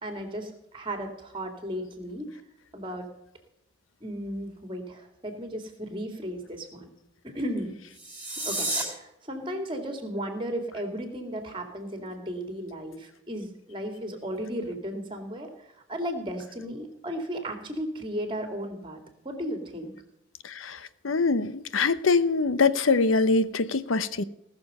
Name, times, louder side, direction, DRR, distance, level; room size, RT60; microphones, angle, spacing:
voice 1, 0.0-2.3 2.7-3.1 4.0-6.9 7.2-7.8 8.5-19.9, equal, 25° right, 2.4 m, -35 dB
sound 1, 7.9-8.8, right 2 dB, 10° right, 4.7 m, -31 dB
voice 2, 20.4-20.8 21.0-24.2, left 4 dB, 90° left, 0.8 m, -23 dB
19.0 x 6.9 x 5.4 m
head